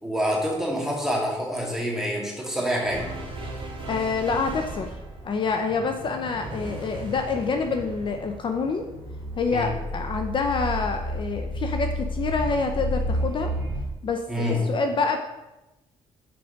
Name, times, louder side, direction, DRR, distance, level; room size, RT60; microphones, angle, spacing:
voice 1, 0.0-3.1 9.5-9.7 14.3-14.6, equal, 5° right, -1 dB, 1.9 m, -26 dB
sound 1, 2.8-11.4, right 1 dB, 45° right, 1.7 m, -38 dB
voice 2, 3.9-4.9 5.2-8.8 9.4-13.5 14.0-15.2, left 4 dB, 45° left, 5 dB, 0.6 m, -27 dB
sound 2, 8.8-13.8, equal, 25° right, 2.4 m, -30 dB
6.0 x 4.8 x 5.2 m, 1.0 s
cardioid pair, 95°, 12 cm